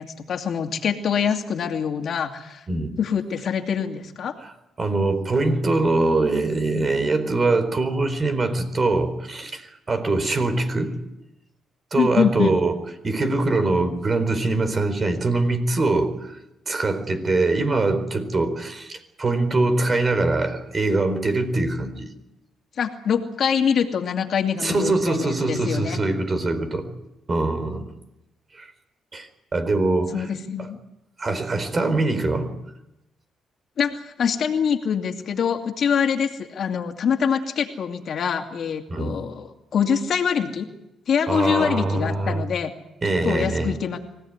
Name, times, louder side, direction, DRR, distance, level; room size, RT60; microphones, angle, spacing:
voice 1, 0.0-2.6 3.0-4.3 12.0-12.6 22.8-26.0 30.1-30.8 33.8-40.7 41.1-42.7 43.2-44.0, left 7 dB, 60° left, 4 dB, 2.5 m, -24 dB
voice 2, 2.7-3.0 4.4-4.5 4.8-11.0 11.9-12.7 13.0-16.3 16.7-22.1 24.6-26.9 27.3-27.9 28.5-28.7 29.1-30.2 30.6-30.7 31.2-32.5 38.9-39.2 41.3-42.4 43.0-43.8, right 2 dB, 35° right, 9 dB, 4.3 m, -23 dB
24.5 x 17.0 x 9.7 m, 0.90 s
cardioid pair, 90°, 0 cm